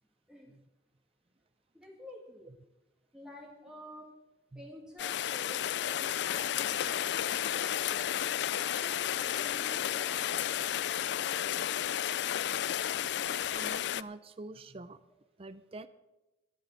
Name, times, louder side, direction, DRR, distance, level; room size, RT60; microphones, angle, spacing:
voice 1, 1.7-2.5 3.1-4.1 4.6-8.2 8.7-10.2, left 1 dB, 5° right, -1 dB, 2.0 m, -50 dB
Rain, 5.0-14.0, left 10 dB, 65° left, 0.4 m, -32 dB
voice 2, 13.5-15.0 15.4-15.9, right 2 dB, 30° right, 12 dB, 0.5 m, -46 dB
13.0 x 11.0 x 6.4 m, 1.0 s
head